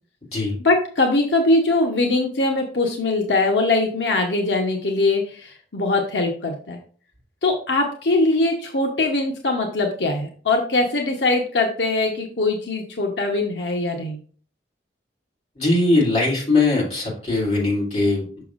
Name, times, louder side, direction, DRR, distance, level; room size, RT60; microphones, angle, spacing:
voice 1, 0.6-6.8 7.4-14.2, left 2 dB, 85° left, 2 dB, 1.0 m, -21 dB
voice 2, 15.5-18.4, left 2 dB, 40° left, -4 dB, 3.1 m, -20 dB
6.8 x 6.0 x 2.5 m, 0.43 s
head